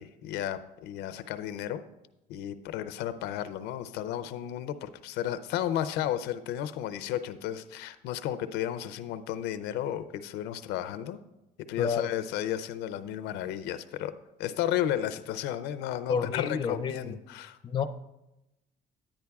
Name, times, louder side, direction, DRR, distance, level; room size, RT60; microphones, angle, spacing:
voice 1, 0.0-1.8 2.3-11.2 11.7-17.6, left 11 dB, 90° left, 12 dB, 0.5 m, -33 dB
voice 2, 11.8-12.1 16.1-17.2 17.6-17.8, left 6 dB, 30° left, 8 dB, 0.5 m, -30 dB
10.0 x 9.7 x 2.3 m, 0.93 s
cardioid pair, 110°, 17 cm